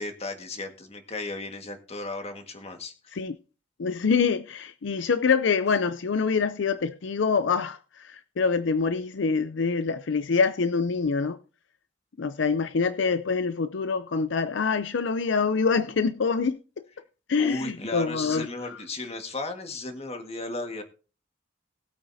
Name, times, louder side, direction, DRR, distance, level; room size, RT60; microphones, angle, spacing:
voice 1, 0.0-3.2 17.4-20.8, left 2 dB, 35° left, 1.7 m, -35 dB
voice 2, 3.8-11.4 12.2-16.6 17.3-18.8, left 5 dB, 70° left, 0.5 m, -25 dB
19.5 x 8.7 x 2.7 m
head